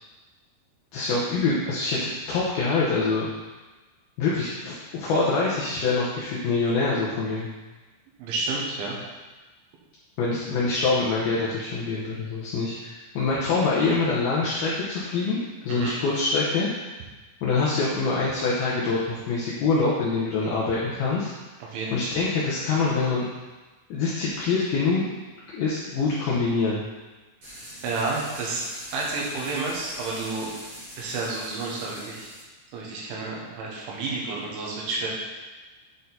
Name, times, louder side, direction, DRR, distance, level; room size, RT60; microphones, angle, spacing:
voice 1, 0.9-3.3 4.2-7.5 10.2-15.4 15.6-16.7 17.4-21.3 21.9-23.2 23.9-25.2 25.5-26.8, left 3 dB, 90° left, -6 dB, 2.1 m, -25 dB
voice 2, 8.2-9.0 15.7-16.0 21.6-21.9 27.8-28.6 28.9-30.5 31.0-32.3 32.7-35.1, right 3 dB, 75° right, -3 dB, 3.6 m, -30 dB
sound 1, 27.4-32.4, equal, 50° right, 1.7 m, -42 dB
9.0 x 4.3 x 4.0 m, 1.2 s
omnidirectional pair, 5.6 m